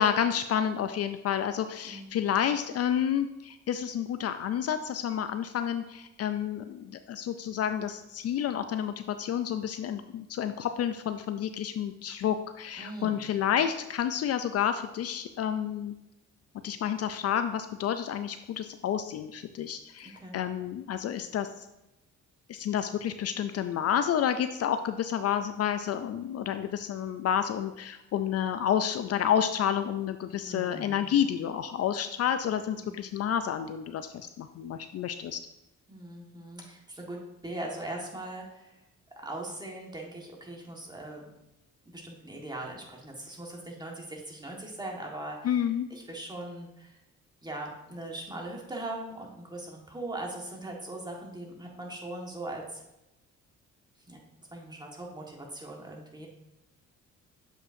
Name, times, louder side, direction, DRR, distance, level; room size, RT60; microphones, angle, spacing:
voice 1, 0.0-15.9 16.6-21.7 22.5-35.4 45.4-45.9, left 9 dB, 55° left, 10 dB, 0.4 m, -30 dB
voice 2, 1.8-2.2 12.8-13.2 20.0-20.3 30.4-31.0 32.7-33.0 35.9-38.7 39.2-41.3 41.8-45.6 45.9-47.0 47.4-52.8 54.1-54.2 54.5-56.3, right 1 dB, 15° right, 0 dB, 1.5 m, -40 dB
7.4 x 5.4 x 2.6 m, 0.93 s
cardioid pair, 90°, 30 cm